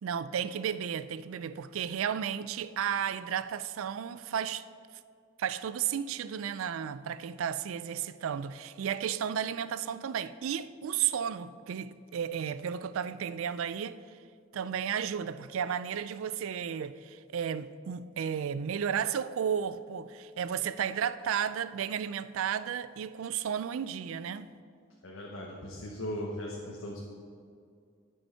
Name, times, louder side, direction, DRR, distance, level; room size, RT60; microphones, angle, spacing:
voice 1, 0.0-4.6 5.4-14.0 14.5-24.5, right 8 dB, 75° right, 0.3 m, -33 dB
voice 2, 25.0-27.0, left 1 dB, 70° left, 1.1 m, -38 dB
11.5 x 5.5 x 5.5 m
head